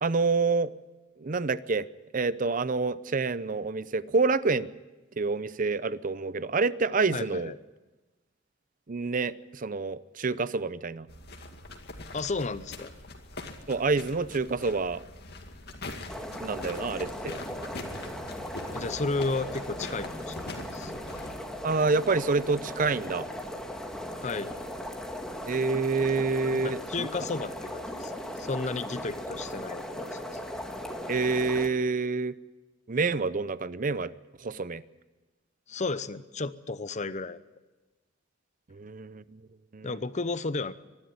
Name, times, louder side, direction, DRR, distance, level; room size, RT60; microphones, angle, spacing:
voice 1, 0.0-0.7 1.2-1.9 2.1-4.7 5.2-7.5 8.9-11.1 13.7-15.0 16.4-17.4 21.6-23.3 25.5-27.1 31.1-32.3 32.9-34.1 34.4-34.8 38.7-39.4 39.7-39.9, right 4 dB, 45° right, 16 dB, 0.6 m, -27 dB
voice 2, 7.1-7.6 12.1-12.9 18.7-20.4 20.7-21.0 24.2-24.5 26.6-28.1 28.4-30.2 35.7-37.4 39.8-40.7, left 3 dB, 35° left, 14 dB, 0.8 m, -33 dB
sound 1, 11.1-21.3, left 2 dB, 55° left, 2.2 m, -43 dB
sound 2, 16.1-31.7, left 1 dB, 5° left, 1.9 m, -38 dB
24.0 x 12.0 x 9.5 m, 1.1 s
head